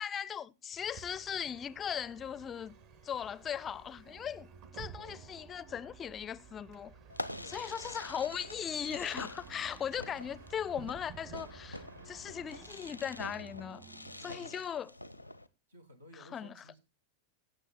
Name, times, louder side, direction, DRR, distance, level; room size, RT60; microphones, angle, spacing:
voice 1, 0.0-2.7 3.0-6.9 7.5-13.8 14.2-14.9 16.3-16.5, left 8 dB, 25° left, 0.5 m, -38 dB
Bus, 0.7-13.1, right 7 dB, 50° right, 1.5 m, -54 dB
sound 1, 4.1-14.6, right 6 dB, 30° right, 1.2 m, -58 dB
voice 2, 4.9-5.7 7.4-8.0 14.1-14.6 15.7-16.8, left 1 dB, 75° right, 1.9 m, -56 dB
Fireworks, 7.1-15.5, left 1 dB, 90° left, 0.7 m, -46 dB
16.5 x 6.8 x 4.1 m
figure-of-eight pair, 90°, 0 cm